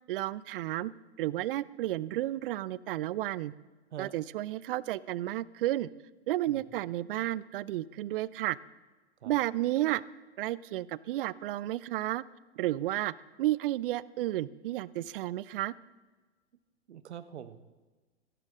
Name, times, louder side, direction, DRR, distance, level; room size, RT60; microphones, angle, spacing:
voice 1, 0.1-0.9 1.2-3.5 4.0-5.9 6.3-8.6 9.2-10.0 10.4-12.2 12.6-15.7, right 15 dB, 55° right, 21 dB, 0.5 m, -32 dB
voice 2, 16.9-17.6, right 9 dB, 75° right, 12 dB, 1.0 m, -44 dB
15.0 x 12.5 x 3.7 m, 1.2 s
hypercardioid pair, 115°, 34 cm